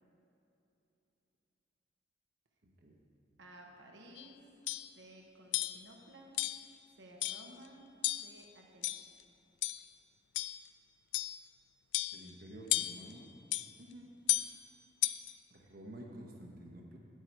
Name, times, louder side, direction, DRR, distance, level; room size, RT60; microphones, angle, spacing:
voice 1, 3.4-4.4 4.9-6.4 6.9-7.9 8.2-9.0 13.8-14.1, right 1 dB, 80° right, 0 dB, 1.0 m, -55 dB
Hitting Copper Pipe (High Pitched), 4.2-4.3 4.7-4.9 5.5-5.8 6.4-6.7 7.2-7.5 8.0-8.4 8.8-9.2 9.6-9.9 10.3-10.7 11.1-11.4 11.9-12.3 12.7-13.1 13.5-13.7 14.3-14.6 15.0-15.3, left 16 dB, 80° left, 0.3 m, -34 dB
voice 2, 12.1-13.3 15.5-17.0, right 1 dB, 55° right, 0 dB, 1.0 m, -50 dB
9.2 x 8.2 x 4.5 m, 2.9 s
head